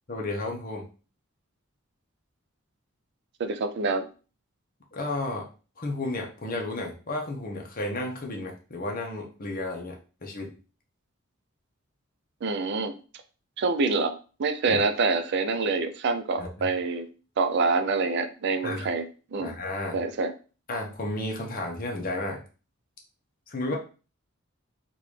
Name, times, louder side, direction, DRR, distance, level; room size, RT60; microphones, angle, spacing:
voice 1, 0.1-0.9 4.9-5.5 5.8-10.6 14.7-14.8 16.4-16.7 18.6-18.9 19.4-20.0 20.7-22.4 23.5-23.8, left 2 dB, 45° left, 1 dB, 0.9 m, -32 dB
voice 2, 3.4-4.1 12.4-12.9 13.6-14.1 14.4-17.1 17.4-19.5 19.9-20.3 23.7-23.8, right 4 dB, 55° right, 9 dB, 0.4 m, -26 dB
3.8 x 2.5 x 3.2 m, 0.35 s
head